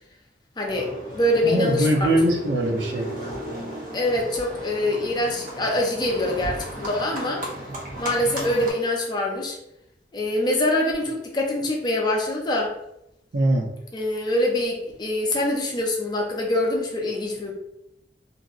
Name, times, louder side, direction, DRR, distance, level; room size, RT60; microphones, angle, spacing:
voice 1, 0.6-2.2 3.9-7.5 8.0-9.6 10.1-12.7 13.9-17.5, left 1 dB, 25° left, -1 dB, 0.5 m, -24 dB
Livestock farm animals working animals, 0.7-8.7, right 1 dB, 50° right, 0.8 m, -35 dB
voice 2, 1.4-3.1 13.3-13.7, right 1 dB, 85° right, 1 dB, 0.7 m, -21 dB
2.9 x 2.6 x 2.4 m, 0.80 s
head